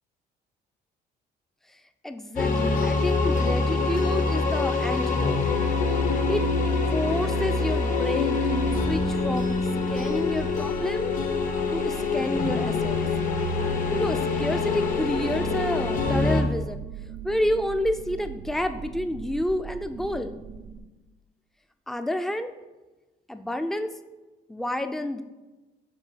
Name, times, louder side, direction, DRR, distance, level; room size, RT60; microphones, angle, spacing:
voice 1, 2.0-5.7 6.3-6.4 6.9-11.1 11.7-13.0 13.9-16.8 17.2-20.3 21.9-22.5 23.3-23.9 24.5-25.2, left 1 dB, ahead, 8 dB, 0.4 m, -29 dB
sound 1, 2.4-16.4, left 3 dB, 55° left, 0.9 m, -25 dB
sound 2, 8.6-20.8, right 8 dB, 45° right, 0.6 m, -40 dB
7.5 x 3.1 x 5.6 m, 1.2 s
cardioid pair, 110°, 17 cm